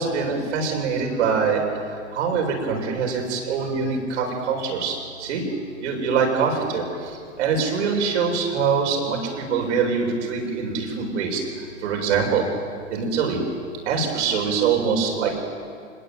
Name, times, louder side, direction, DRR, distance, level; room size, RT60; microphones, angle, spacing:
voice 1, 0.0-1.6 2.1-5.4 5.8-6.8 7.4-11.4 11.8-12.4 12.9-13.4 13.9-15.4, right 5 dB, 65° right, 1 dB, 7.6 m, -23 dB
25.5 x 21.5 x 9.3 m, 2.2 s
hypercardioid pair, 115°, 38 cm